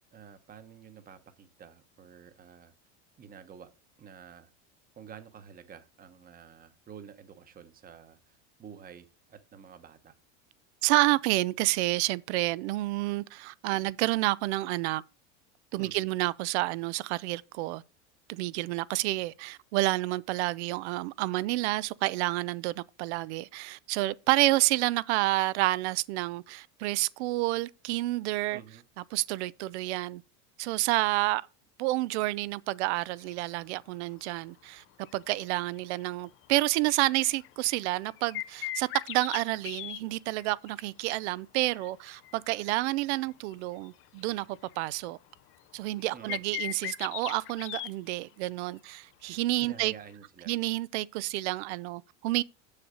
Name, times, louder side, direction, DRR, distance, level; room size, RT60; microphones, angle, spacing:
voice 1, 0.1-2.7 3.2-3.7 4.0-4.5 5.0-10.1 15.8-15.9 28.5-28.8 46.1-46.4 49.6-50.5, right 7 dB, 25° right, 1.0 m, -49 dB
voice 2, 10.8-15.0 15.7-17.8 18.3-28.6 29.1-30.2 30.6-31.4 31.8-34.8 35.1-45.2 45.7-49.9 50.5-52.4, right 19 dB, 75° right, 0.6 m, -29 dB
sound 1, 33.0-33.3 34.2-34.3 34.8-35.1 35.4-35.5 35.8-36.0 36.4-40.0 40.4-41.2 41.7-43.1 43.5-43.6 43.8-45.0 45.5-45.6 45.8-47.9 49.3-49.4 50.1-50.2, left 15 dB, 35° left, 0.5 m, -39 dB
7.1 x 6.6 x 3.8 m
supercardioid pair, 125°, 35 cm